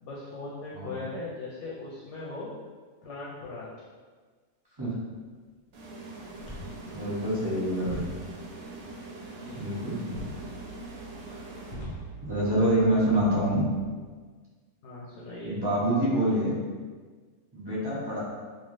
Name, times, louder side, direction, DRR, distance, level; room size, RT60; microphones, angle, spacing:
voice 1, 0.0-2.5 3.0-3.7 9.4-10.0 14.8-15.6, left 2 dB, 65° left, -6 dB, 0.8 m, -39 dB
sound 1, 5.7-12.3, right 2 dB, 80° right, 1.0 m, -43 dB
sound 2, 6.4-13.8, right 1 dB, 40° left, 0.5 m, -44 dB
voice 2, 6.9-8.1 9.5-10.2 12.2-13.6 15.4-16.5 17.5-18.2, right 1 dB, 25° right, -9 dB, 0.6 m, -26 dB
3.1 x 2.4 x 2.5 m, 1.5 s
omnidirectional pair, 1.5 m